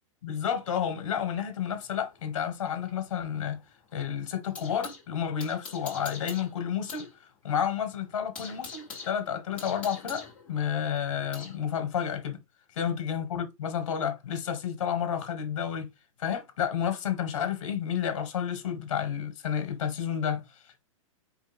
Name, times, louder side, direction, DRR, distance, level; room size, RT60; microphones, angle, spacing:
voice 1, 0.2-3.6 3.9-7.1 7.4-12.4 12.7-15.9 16.2-20.4, left 8 dB, 60° left, 1.4 m, -31 dB
sound 1, 1.8-5.0 5.4-7.1 7.4-7.5 7.9-11.6, left 5 dB, 5° left, 1.2 m, -44 dB
4.8 x 2.5 x 3.5 m
hypercardioid pair, 180°, 18 cm